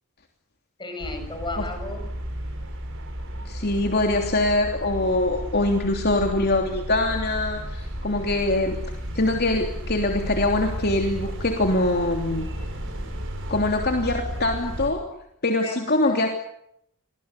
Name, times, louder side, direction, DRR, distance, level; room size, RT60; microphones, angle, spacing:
voice 1, 0.8-2.2 15.6-16.2, left 2 dB, 20° left, 7 dB, 7.0 m, -34 dB
sound 1, 1.0-14.9, equal, 60° right, 7.8 m, -33 dB
voice 2, 3.4-8.8 9.1-12.5 13.5-15.0 15.4-16.3, left 2 dB, 45° left, 3 dB, 3.2 m, -23 dB
29.5 x 24.0 x 8.3 m, 0.75 s
head